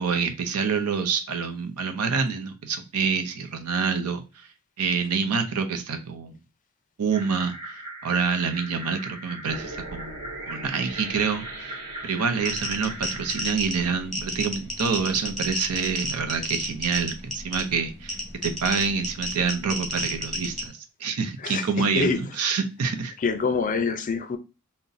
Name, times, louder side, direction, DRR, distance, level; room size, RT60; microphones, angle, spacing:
voice 1, 0.0-4.5 4.8-6.4 7.0-23.1, right 5 dB, 85° right, 0.6 m, -27 dB
sound 1, 7.1-13.4, right 1 dB, 25° right, 1.1 m, -40 dB
sound 2, 9.5-14.7, right 2 dB, 55° right, 1.0 m, -42 dB
sound 3, 12.5-20.7, equal, ahead, 1.0 m, -32 dB
voice 2, 23.2-24.4, left 4 dB, 35° left, 0.4 m, -25 dB
2.6 x 2.1 x 3.9 m
head